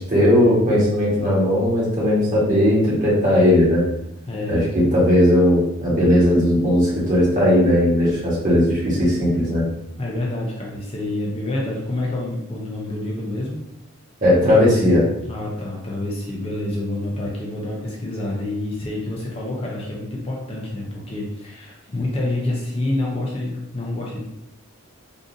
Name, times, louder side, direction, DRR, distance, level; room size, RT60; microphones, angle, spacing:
voice 1, 0.1-3.8 4.5-9.7 14.2-15.0, left 1 dB, 40° right, -6 dB, 1.3 m, -17 dB
voice 2, 4.3-4.7 10.0-13.6 15.3-24.2, left 1 dB, 25° left, -3 dB, 0.5 m, -27 dB
3.7 x 2.6 x 2.6 m, 0.86 s
head